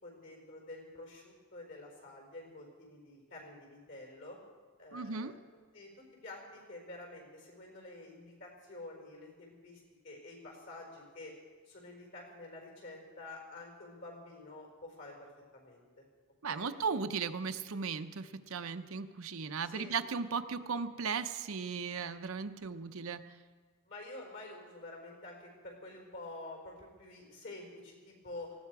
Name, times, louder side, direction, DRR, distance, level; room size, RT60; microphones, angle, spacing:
voice 1, 0.0-4.4 4.8-5.3 5.7-11.3 11.6-16.0 16.5-16.7 19.6-19.9 23.8-28.5, left 2 dB, 55° left, 1 dB, 4.8 m, -49 dB
voice 2, 4.9-5.3 16.4-23.2, right 5 dB, 75° right, 9 dB, 0.7 m, -36 dB
19.0 x 15.5 x 4.8 m, 1.5 s
head